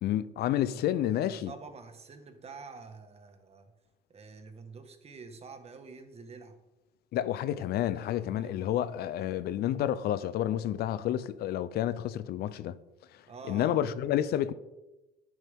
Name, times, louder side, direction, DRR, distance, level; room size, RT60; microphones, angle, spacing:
voice 1, 0.0-1.5 7.1-12.8 13.5-14.5, left 11 dB, 70° left, 0.6 m, -30 dB
voice 2, 1.1-3.7 4.1-6.5 8.4-8.6 13.3-13.9, right 4 dB, 35° right, 1.6 m, -47 dB
11.0 x 9.7 x 3.6 m
cardioid pair, 110°, 17 cm